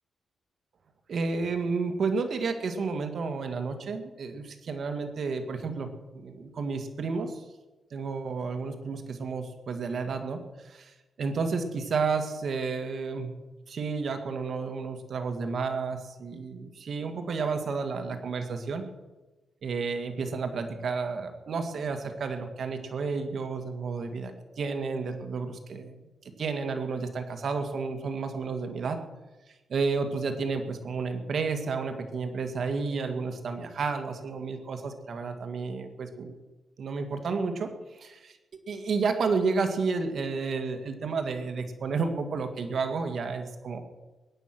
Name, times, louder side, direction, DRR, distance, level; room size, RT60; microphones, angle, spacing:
voice 1, 1.1-7.4 7.9-13.3 13.7-18.8 19.6-26.0 26.4-29.0 29.7-36.4 36.8-38.4 38.7-43.8, right 4 dB, 60° right, 6 dB, 2.1 m, -31 dB
21.0 x 9.4 x 6.2 m, 1.1 s
cardioid pair, 85°, 0 cm